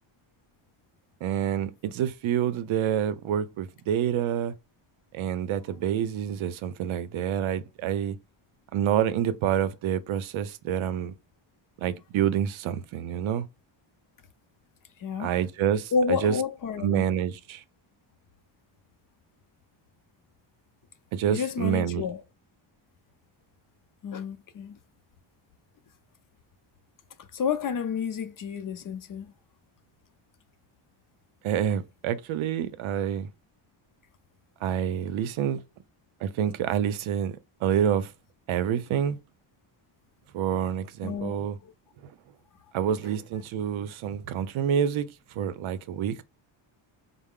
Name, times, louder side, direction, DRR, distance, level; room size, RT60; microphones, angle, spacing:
voice 1, 1.2-4.5 5.1-8.2 8.7-11.1 11.8-13.5 15.2-16.3 16.8-17.6 21.1-22.0 31.4-33.3 34.6-35.6 36.2-38.1 38.5-39.2 40.3-41.6 42.0-42.1 42.7-46.2, right 9 dB, 75° right, 0.6 m, -27 dB
voice 2, 15.0-15.3 15.9-17.0 21.3-22.2 24.0-24.8 27.3-29.3 41.0-41.7, left 6 dB, 45° left, 0.5 m, -30 dB
4.5 x 2.0 x 3.6 m
cardioid pair, 130°, 49 cm